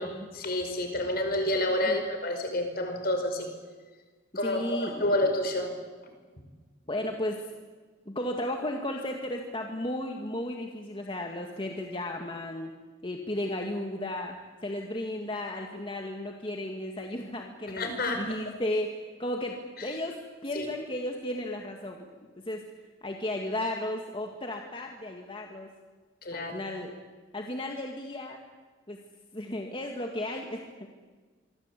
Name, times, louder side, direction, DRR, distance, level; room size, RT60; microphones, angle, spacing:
voice 1, 0.0-3.5 4.4-5.7 17.8-18.2 19.8-19.9 20.6-20.7 26.2-26.6, left 1 dB, 50° left, 6 dB, 5.2 m, -29 dB
voice 2, 4.4-5.2 6.9-7.5 8.1-12.7 13.0-14.4 14.6-17.9 18.2-18.9 19.2-22.1 22.4-22.7 23.0-25.7 26.3-26.9 27.3-28.4 28.9-29.0 29.3-30.9, left 1 dB, 25° left, 2 dB, 2.1 m, -34 dB
25.5 x 25.0 x 8.4 m, 1.4 s
head